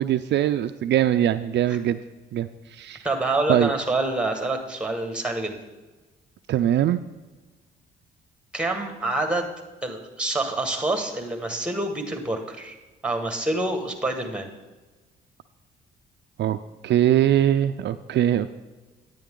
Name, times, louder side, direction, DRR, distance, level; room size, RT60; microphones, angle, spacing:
voice 1, 0.0-2.0 2.3-3.1 3.5-3.7 6.5-7.0 16.4-16.6 16.8-18.5, right 11 dB, 65° right, 10 dB, 0.4 m, -22 dB
voice 2, 3.0-5.6 8.5-9.5 9.8-12.7 13.0-14.5, right 2 dB, 5° right, 4 dB, 1.6 m, -27 dB
10.0 x 9.1 x 3.8 m, 1.2 s
cardioid pair, 90°, 20 cm